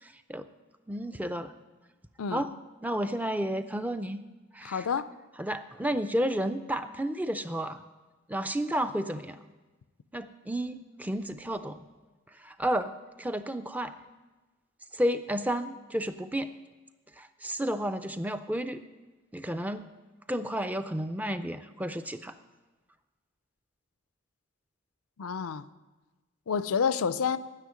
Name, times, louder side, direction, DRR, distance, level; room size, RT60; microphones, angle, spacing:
voice 1, 0.0-0.5 0.9-1.5 2.3-2.5 2.8-4.2 4.5-4.9 5.4-7.8 8.3-9.4 10.1-11.8 12.4-12.9 13.2-13.9 14.9-16.5 17.2-18.8 19.3-19.9 20.3-22.4, equal, 5° right, 0.4 m, -31 dB
voice 2, 4.6-5.1 25.2-25.7 26.5-27.4, left 6 dB, 90° left, 0.5 m, -29 dB
9.9 x 7.9 x 9.5 m
head